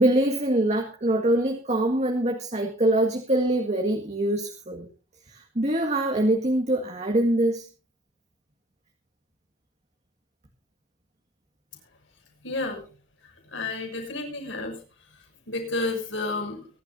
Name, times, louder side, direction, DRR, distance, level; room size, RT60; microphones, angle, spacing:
voice 1, 0.0-4.9 5.3-7.7, right 1 dB, 35° right, 2 dB, 1.9 m, -24 dB
voice 2, 12.4-12.8 13.5-14.8 15.5-16.7, left 2 dB, 70° left, 3 dB, 6.6 m, -30 dB
23.5 x 12.5 x 2.7 m, 0.36 s
head